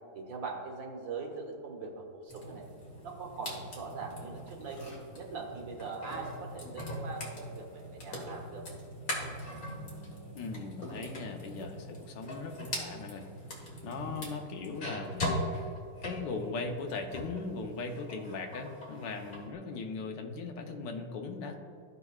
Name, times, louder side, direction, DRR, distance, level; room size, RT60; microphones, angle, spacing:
voice 1, 0.1-2.7 3.0-8.8 14.1-14.3, right 4 dB, 80° right, 0 dB, 1.9 m, -42 dB
sound 1, 2.3-17.4 17.8-19.4, left 1 dB, 50° left, 2.0 m, -41 dB
voice 2, 10.3-13.2 13.5-15.7 16.0-21.5, left 4 dB, 75° left, 4 dB, 1.4 m, -39 dB
14.5 x 5.4 x 2.3 m, 2.4 s
omnidirectional pair, 2.0 m